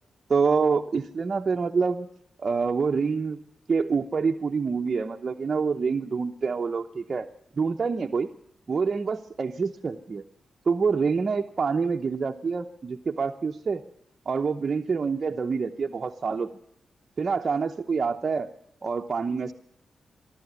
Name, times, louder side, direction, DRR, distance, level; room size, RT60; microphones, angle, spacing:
voice 1, 0.3-2.1 2.4-3.4 3.7-7.3 7.6-8.3 8.7-10.2 10.7-13.8 14.3-16.5 17.2-18.5 18.8-19.5, right 5 dB, 40° right, 2 dB, 0.8 m, -26 dB
24.0 x 12.5 x 9.5 m, 0.73 s
wide cardioid pair, 125°, 0 cm